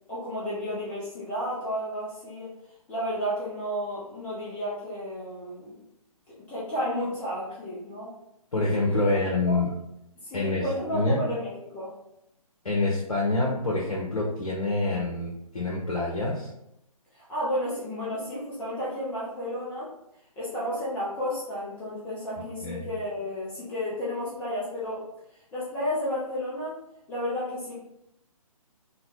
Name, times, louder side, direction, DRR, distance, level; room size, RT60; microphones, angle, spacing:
voice 1, 0.1-2.5 2.9-5.8 6.3-8.1 8.9-9.2 9.5-9.6 10.2-11.9 17.1-19.9 20.4-25.0 25.3-26.8 27.1-27.7, equal, 10° left, -8 dB, 0.4 m, -32 dB
voice 2, 8.5-9.7 10.3-10.6 10.9-11.2 12.6-16.5 22.6-22.9, left 2 dB, 70° left, -3 dB, 0.8 m, -26 dB
4.0 x 2.2 x 2.9 m, 0.81 s
figure-of-eight pair, 135°, 19 cm